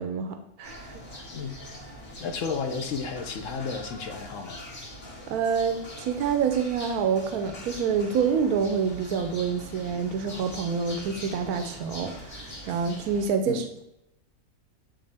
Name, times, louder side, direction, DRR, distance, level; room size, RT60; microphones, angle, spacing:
voice 1, 0.0-1.2 5.3-13.8, right 6 dB, 85° right, 7 dB, 1.1 m, -27 dB
sound 1, 0.6-13.3, equal, 40° left, 1.8 m, -42 dB
voice 2, 1.3-1.7 2.2-4.6 13.5-13.6, left 5 dB, 65° left, 6 dB, 0.9 m, -32 dB
10.0 x 3.8 x 3.3 m, 0.86 s
omnidirectional pair, 1.5 m